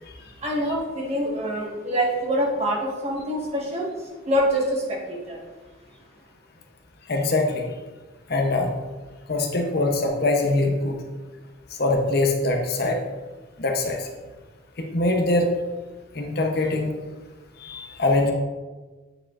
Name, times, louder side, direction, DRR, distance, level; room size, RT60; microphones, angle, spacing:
voice 1, 0.4-5.4, equal, 35° right, -3 dB, 1.4 m, -25 dB
voice 2, 7.1-7.6 8.3-8.7 9.3-11.0 11.8-13.0 13.6-14.1 14.9-15.5 16.1-16.9 17.6-18.3, left 2 dB, 50° left, 2 dB, 0.7 m, -23 dB
8.6 x 4.9 x 2.4 m, 1.3 s
head